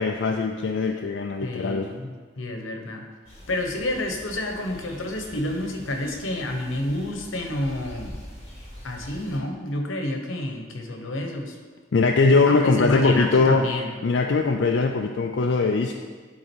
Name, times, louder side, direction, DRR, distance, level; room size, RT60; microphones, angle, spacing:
voice 1, 0.0-1.9 11.9-13.7 14.0-15.9, left 4 dB, 60° left, 2 dB, 0.4 m, -21 dB
voice 2, 1.4-3.0 3.5-8.2 8.8-11.6 12.5-13.9, left 1 dB, 85° left, 3 dB, 1.0 m, -29 dB
sound 1, 3.3-9.4, equal, 30° left, 2.4 m, -44 dB
11.0 x 3.7 x 4.5 m, 1.5 s
head